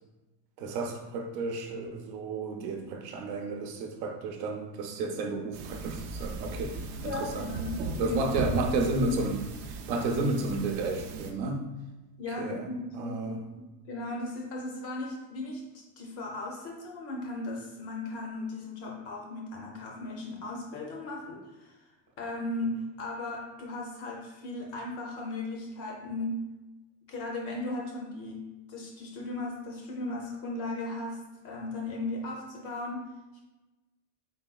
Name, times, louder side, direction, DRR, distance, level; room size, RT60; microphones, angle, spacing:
voice 1, 0.6-6.7 7.0-7.5 8.0-9.5 9.9-11.7 12.4-12.7 12.9-13.5, right 2 dB, 90° right, 4 dB, 0.8 m, -32 dB
sound 1, 5.5-11.3, right 3 dB, 60° right, 0.6 m, -37 dB
voice 2, 7.0-8.5 12.2-21.9 22.2-26.4 27.1-28.4 28.7-33.0, left 2 dB, 30° left, -1 dB, 0.4 m, -37 dB
4.0 x 3.9 x 2.3 m, 1.1 s
cardioid pair, 175°, 50 cm